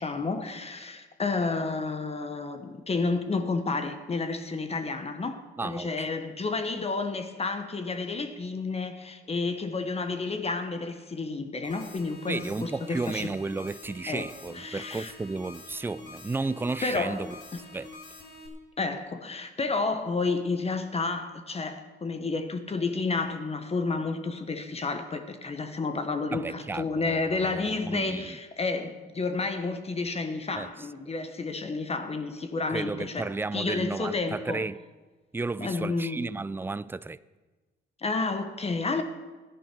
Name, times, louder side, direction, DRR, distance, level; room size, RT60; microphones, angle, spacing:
voice 1, 0.0-13.3 14.1-14.3 14.5-15.1 16.8-17.2 18.8-33.3 33.5-34.6 35.6-36.2 38.0-39.0, left 3 dB, 30° left, 1.1 m, -30 dB
voice 2, 5.6-6.1 12.3-17.4 17.7-17.9 26.3-28.4 30.5-30.7 32.7-34.8 35.3-37.2, right 3 dB, 10° right, 0.4 m, -33 dB
sound 1, 11.6-18.5, left 2 dB, 60° left, 3.1 m, -46 dB
13.5 x 10.0 x 6.1 m
cardioid pair, 90°, 20 cm